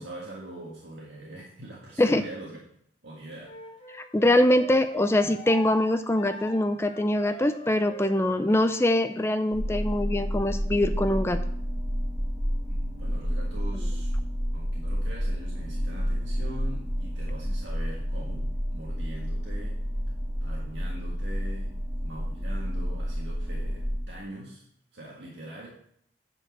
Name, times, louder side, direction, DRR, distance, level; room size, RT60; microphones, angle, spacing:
voice 1, 0.0-2.6 3.0-3.8 12.7-14.1 14.5-19.8 20.4-24.6 24.9-25.7, right 1 dB, 75° right, -4 dB, 1.7 m, -43 dB
Wind instrument woodwind instrument, 3.4-8.9, left 2 dB, 30° left, 1.6 m, -42 dB
voice 2, 3.9-11.4, left 1 dB, 15° left, 9 dB, 0.4 m, -23 dB
sound 1, 9.5-24.0, equal, 30° right, 2.7 m, -30 dB
9.0 x 4.6 x 6.1 m, 0.66 s
head